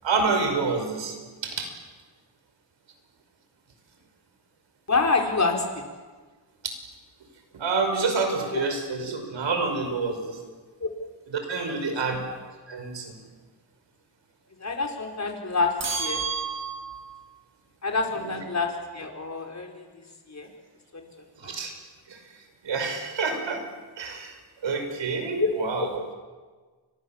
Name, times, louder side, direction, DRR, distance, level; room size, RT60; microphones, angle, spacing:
voice 1, 0.0-1.2 1.4-1.7 6.6-6.7 7.5-10.4 11.3-12.3 12.7-13.2 18.2-18.4 21.4-21.7 22.1-22.2 22.6-23.6 24.0-25.9, right 4 dB, 90° right, 5 dB, 5.6 m, -28 dB
voice 2, 4.9-5.8 8.5-8.6 10.8-10.9 12.3-12.4 14.6-16.2 17.8-20.5 20.9-21.1 21.4-21.5 25.4-25.5 25.8-25.9, left 4 dB, 40° left, 3 dB, 5.0 m, -27 dB
sound 1, 15.8-17.2, right 5 dB, 35° right, 4.8 m, -31 dB
30.0 x 25.5 x 7.4 m, 1.4 s
wide cardioid pair, 100°, 43 cm